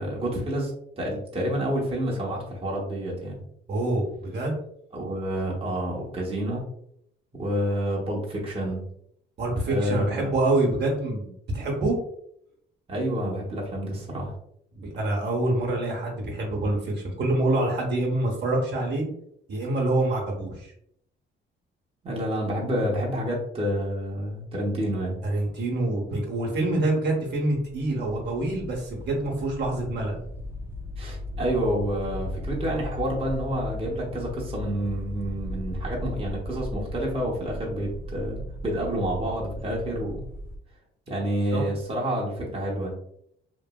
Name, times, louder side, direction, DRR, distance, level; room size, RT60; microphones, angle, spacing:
voice 1, 0.0-3.4 4.9-6.7 7.3-8.8 9.7-10.3 12.9-14.3 22.0-25.2 31.0-40.2 41.1-42.9, equal, 30° right, -3 dB, 0.9 m, -29 dB
voice 2, 3.7-4.6 9.4-12.0 14.7-19.1 19.5-20.7 25.2-30.2 41.5-41.7, right 2 dB, 60° right, -1 dB, 1.0 m, -26 dB
sound 1, 27.5-40.6, left 1 dB, 10° right, 0.4 m, -37 dB
3.0 x 2.6 x 2.2 m, 0.71 s
cardioid pair, 90°, 20 cm